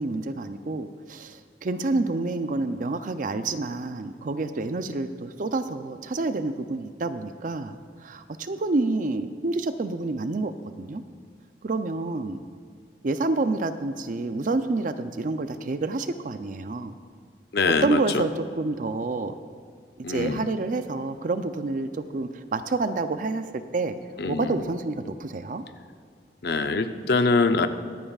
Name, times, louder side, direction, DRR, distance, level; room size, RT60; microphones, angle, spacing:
voice 1, 0.0-7.8 8.0-11.0 11.6-12.4 13.0-17.0 17.8-19.3 20.1-24.0 24.3-25.6, right 3 dB, 50° right, 10 dB, 0.5 m, -28 dB
voice 2, 17.5-18.2 20.0-20.5 24.2-24.6 26.4-27.7, left 3 dB, 65° left, 9 dB, 0.6 m, -24 dB
24.0 x 8.8 x 2.4 m, 2.1 s
head